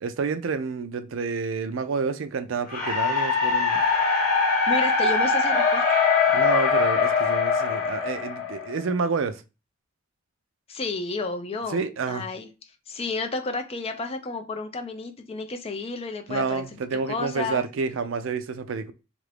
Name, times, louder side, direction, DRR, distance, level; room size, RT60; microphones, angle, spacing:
voice 1, 0.0-3.9 6.3-9.4 11.7-12.3 16.3-18.9, right 5 dB, 70° right, 0.4 m, -29 dB
sound 1, 2.7-8.8, left 5 dB, 45° left, 1.1 m, -22 dB
voice 2, 4.7-5.8 10.7-12.5 12.9-17.7, left 3 dB, 30° left, 0.4 m, -31 dB
3.2 x 2.5 x 3.3 m
head